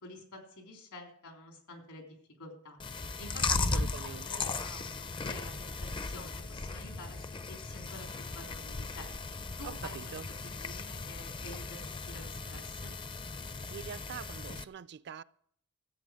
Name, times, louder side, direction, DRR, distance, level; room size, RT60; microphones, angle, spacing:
voice 1, 0.0-8.1 8.3-10.1 10.6-12.9, left 2 dB, 85° left, 3.6 m, -49 dB
Chewing mastication, 2.8-14.6, left 3 dB, 20° left, 0.4 m, -37 dB
voice 2, 3.5-4.4 9.6-10.3 13.7-15.2, right 7 dB, 50° right, 0.4 m, -44 dB
13.5 x 8.4 x 6.4 m
head